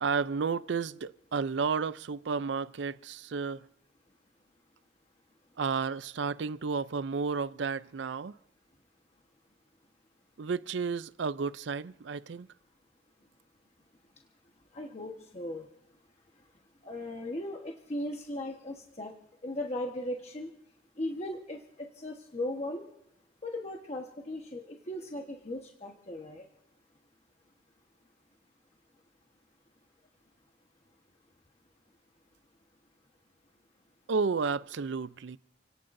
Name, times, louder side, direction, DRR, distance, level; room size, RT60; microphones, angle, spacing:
voice 1, 0.0-3.7 5.6-8.4 10.4-12.5 34.1-35.4, right 5 dB, 75° right, 0.5 m, -32 dB
voice 2, 14.7-15.6 16.8-19.1 19.4-20.5 21.0-22.8 23.4-26.4, left 1 dB, 35° left, 1.2 m, -37 dB
29.5 x 18.0 x 2.6 m
head